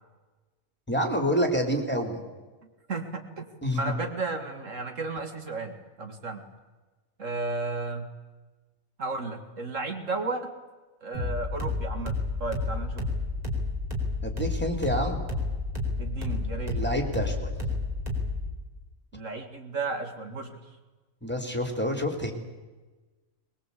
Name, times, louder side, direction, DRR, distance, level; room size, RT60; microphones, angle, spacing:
voice 1, 0.9-2.2 3.6-3.9 14.2-15.2 16.7-17.5 21.2-22.3, equal, 5° left, 4 dB, 3.2 m, -28 dB
voice 2, 2.9-3.5 3.7-6.4 7.2-8.1 9.0-10.5 11.0-12.2 12.4-13.1 16.0-16.8 19.1-20.8, right 3 dB, 65° right, 5 dB, 2.4 m, -33 dB
sound 1, 11.1-18.5, left 3 dB, 30° right, 4.6 m, -30 dB
22.5 x 21.0 x 8.4 m, 1.2 s
omnidirectional pair, 1.4 m